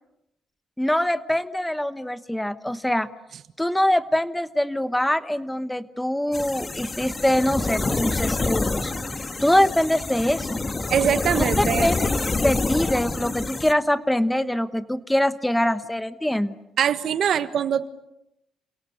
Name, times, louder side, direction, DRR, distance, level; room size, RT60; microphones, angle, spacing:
voice 1, 0.8-3.1 3.6-8.9 9.4-10.6 11.8-12.0 12.4-16.5, left 1 dB, 5° left, 13 dB, 1.1 m, -23 dB
sound 1, 6.3-13.7, left 3 dB, 25° left, 1.7 m, -27 dB
voice 2, 10.9-11.9 16.8-17.9, right 8 dB, 65° right, 12 dB, 1.4 m, -22 dB
30.0 x 28.0 x 6.8 m, 0.85 s
cardioid pair, 90°, 0 cm